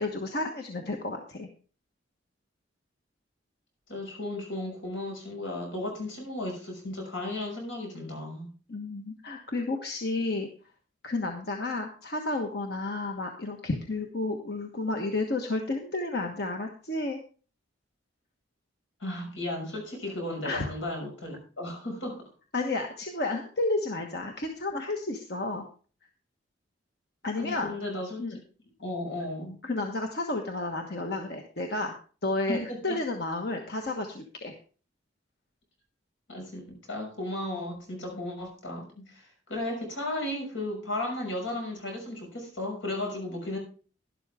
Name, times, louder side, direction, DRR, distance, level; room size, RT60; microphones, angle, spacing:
voice 1, 0.0-1.5 8.7-10.5 11.0-17.2 20.4-20.7 22.5-25.6 27.2-27.7 28.2-28.4 29.6-31.9 32.2-34.5, left 2 dB, 55° left, 3 dB, 1.3 m, -31 dB
voice 2, 3.9-8.5 19.0-22.2 27.3-28.2 28.8-29.6 32.5-33.0 36.3-43.6, left 1 dB, 85° left, 1 dB, 6.0 m, -35 dB
12.5 x 11.5 x 3.6 m, 0.38 s
head